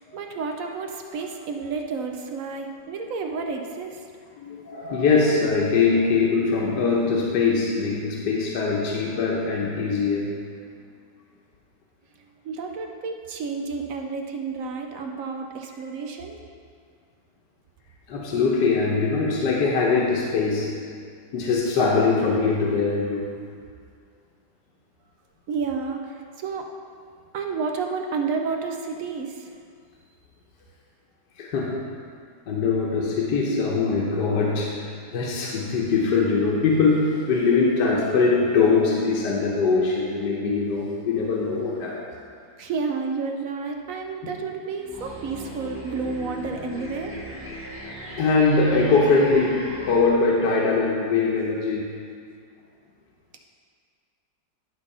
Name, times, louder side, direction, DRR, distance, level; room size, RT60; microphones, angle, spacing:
voice 1, 0.0-4.1 12.4-16.4 21.2-21.3 25.5-26.7 27.3-29.5 42.6-47.2, right 4 dB, 65° right, 3 dB, 0.9 m, -31 dB
voice 2, 4.4-10.3 18.1-20.7 21.3-23.3 31.4-31.8 32.5-34.8 35.1-42.0 48.1-51.9, left 4 dB, 70° left, -3 dB, 1.5 m, -22 dB
sound 1, 44.9-50.0, right 1 dB, 10° right, 1.2 m, -38 dB
11.0 x 4.0 x 5.6 m, 2.1 s
omnidirectional pair, 1.9 m